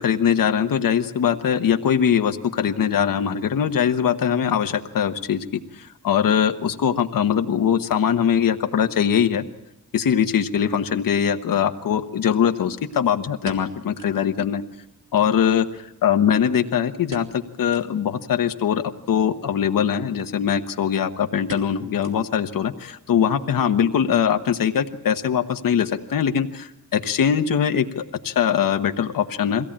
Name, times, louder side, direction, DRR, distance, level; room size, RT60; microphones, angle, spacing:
voice 1, 0.0-9.4 9.9-14.6 15.1-29.7, left 8 dB, 90° left, 7 dB, 1.2 m, -22 dB
sound 1, 13.0-14.3 14.6-14.7 15.0-15.1 15.7-16.6 17.1-17.4 17.7-18.0 18.5-18.6 19.5-19.8 20.2-20.3 20.6-20.9 21.5-22.6 22.9-23.0 23.5-23.9 24.2-24.3, right 4 dB, 75° right, 2.6 m, -43 dB
23.0 x 17.0 x 8.7 m, 0.93 s
wide cardioid pair, 100°, 33 cm